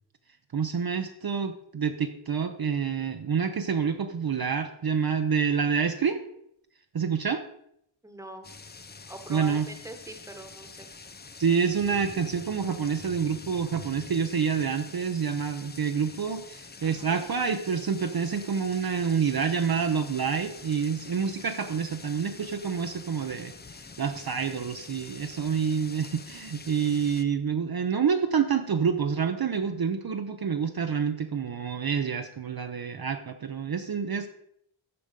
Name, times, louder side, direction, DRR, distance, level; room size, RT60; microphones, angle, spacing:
voice 1, 0.5-6.2 6.9-7.4 9.3-9.7 11.4-34.3, right 6 dB, 50° right, 6 dB, 0.7 m, -28 dB
voice 2, 8.0-8.5 9.1-10.8 16.8-17.2, right 2 dB, 5° right, 6 dB, 1.2 m, -42 dB
sound 1, 8.4-27.2, left 4 dB, 20° left, 0.5 m, -46 dB
14.0 x 5.1 x 5.1 m, 0.75 s
wide cardioid pair, 110°, 48 cm